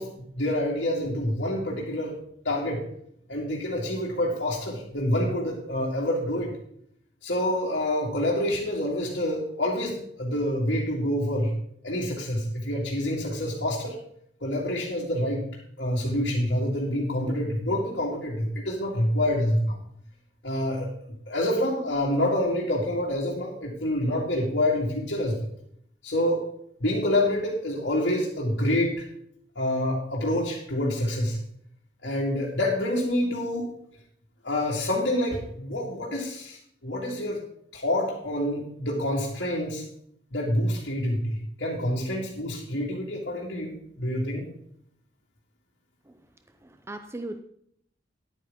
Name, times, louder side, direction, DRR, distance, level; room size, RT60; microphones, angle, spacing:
voice 1, 0.0-2.2 2.4-2.9 3.3-6.5 7.2-11.6 11.8-14.0 14.4-15.4 15.8-19.8 20.4-20.9 21.3-25.5 26.0-26.5 26.8-29.1 29.6-31.4 32.0-33.7 34.4-37.5 37.7-39.9 40.3-44.5, left 1 dB, 65° left, -5 dB, 2.4 m, -27 dB
voice 2, 46.6-47.4, right 2 dB, 15° right, 8 dB, 0.5 m, -38 dB
11.0 x 9.6 x 3.6 m, 0.69 s
head